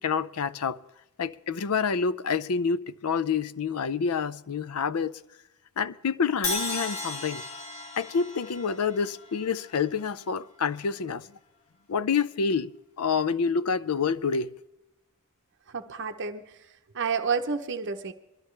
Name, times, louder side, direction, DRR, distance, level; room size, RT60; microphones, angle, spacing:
voice 1, 0.0-0.8 1.2-5.1 5.8-7.5 8.0-11.2 11.9-12.7 13.0-14.5, left 5 dB, 85° left, 0.5 m, -27 dB
Crash cymbal, 6.4-10.5, left 3 dB, 30° left, 2.4 m, -35 dB
voice 2, 15.7-16.6 16.9-18.1, right 5 dB, 55° right, 0.8 m, -30 dB
22.5 x 13.0 x 3.2 m
head